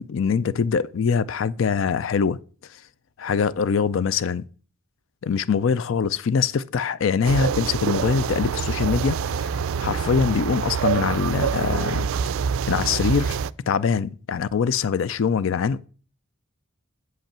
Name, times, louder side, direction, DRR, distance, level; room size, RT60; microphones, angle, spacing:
voice 1, 0.0-2.4 3.2-4.4 5.2-12.1 12.7-13.4 13.7-15.9, left 6 dB, 65° left, 0.4 m, -23 dB
sound 1, 7.2-13.5, right 6 dB, 75° right, 0.3 m, -26 dB
7.8 x 5.4 x 7.2 m
head